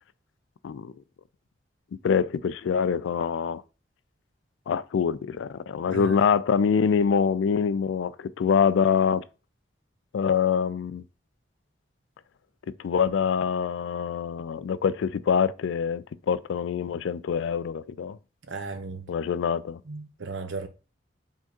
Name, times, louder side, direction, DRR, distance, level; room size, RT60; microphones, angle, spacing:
voice 1, 2.0-3.6 4.7-9.2 10.1-11.0 12.8-18.2 19.1-19.8, left 6 dB, 90° left, 0.3 m, -25 dB
voice 2, 18.5-19.1 19.9-20.7, right 4 dB, 90° right, 0.7 m, -35 dB
4.5 x 3.6 x 2.9 m
head